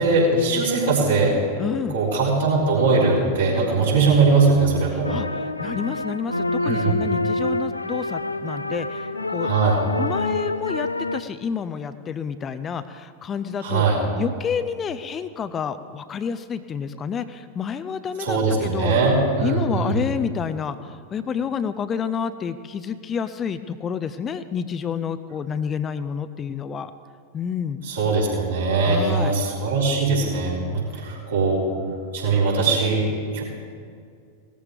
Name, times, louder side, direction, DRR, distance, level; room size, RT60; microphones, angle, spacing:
voice 1, 0.0-1.4 1.9-5.2 6.6-6.9 9.4-9.8 13.6-14.0 18.2-20.0 27.8-31.6 32.1-33.1 33.3-33.4, right 3 dB, 65° right, -6 dB, 4.1 m, -20 dB
voice 2, 1.6-2.0 4.9-9.5 10.0-13.8 14.2-18.9 19.4-26.9 27.3-27.8 28.8-29.3, left 7 dB, 25° left, 11 dB, 0.5 m, -29 dB
sound 1, 5.0-11.2, left 2 dB, 85° left, 0.4 m, -27 dB
18.0 x 13.5 x 3.5 m, 2.3 s
figure-of-eight pair, 90°, 0 cm